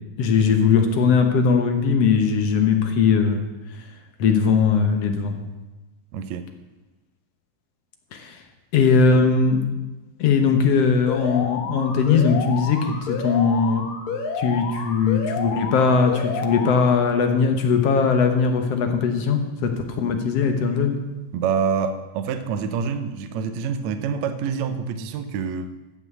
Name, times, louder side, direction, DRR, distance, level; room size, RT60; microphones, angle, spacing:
voice 1, 0.2-3.5 4.2-5.4 8.1-8.4 8.7-9.6 10.2-13.9 14.4-21.0, left 5 dB, 65° left, 6 dB, 1.7 m, -20 dB
voice 2, 6.1-6.5 21.3-25.7, right 6 dB, 75° right, 9 dB, 1.7 m, -26 dB
Alarm, 11.1-17.1, left 5 dB, 80° left, 3.2 m, -30 dB
14.0 x 6.1 x 8.4 m, 1.1 s
omnidirectional pair, 3.9 m